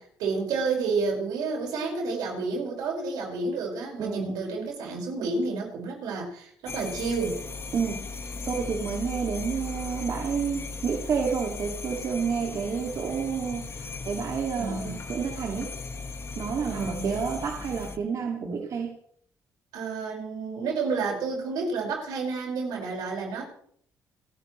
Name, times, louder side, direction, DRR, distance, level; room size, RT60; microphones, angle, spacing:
voice 1, 0.0-7.4 14.6-15.0 16.6-17.2 19.7-23.4, right 4 dB, 85° right, 0 dB, 5.5 m, -30 dB
voice 2, 4.0-4.3 7.7-8.0 8.5-15.7 16.4-18.9, right 6 dB, 60° right, 0 dB, 2.3 m, -30 dB
sound 1, 6.7-18.0, left 4 dB, 40° left, 1.6 m, -37 dB
29.5 x 10.5 x 3.2 m, 0.63 s
cardioid pair, 75°, 7 cm